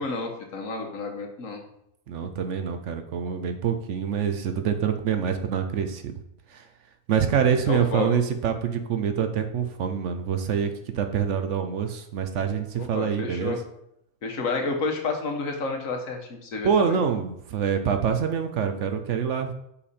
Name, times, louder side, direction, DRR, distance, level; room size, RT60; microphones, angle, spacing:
voice 1, 0.0-1.6 7.7-8.1 12.7-13.6 14.2-17.0, left 3 dB, 70° left, 3 dB, 1.5 m, -30 dB
voice 2, 2.1-6.1 6.5-6.7 7.1-13.6 16.6-19.5, right 7 dB, 65° right, 7 dB, 0.9 m, -26 dB
5.6 x 4.9 x 4.2 m, 0.79 s
omnidirectional pair, 1.5 m